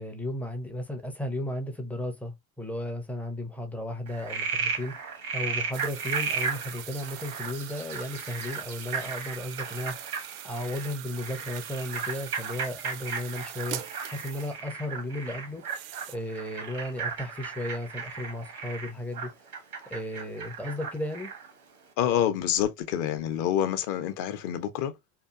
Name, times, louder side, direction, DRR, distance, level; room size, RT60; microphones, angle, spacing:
voice 1, 0.0-10.1 10.4-13.8 14.1-15.6 16.1-19.3 19.9-21.3, left 1 dB, 5° left, 0.4 m, -34 dB
Frog, 4.1-21.5, right 5 dB, 85° right, 0.9 m, -35 dB
sound 1, 5.7-14.6 15.5-16.2, right 12 dB, 65° right, 0.5 m, -42 dB
voice 2, 22.0-24.9, left 10 dB, 45° left, 0.6 m, -27 dB
2.7 x 2.5 x 2.3 m
figure-of-eight pair, 70°, 44 cm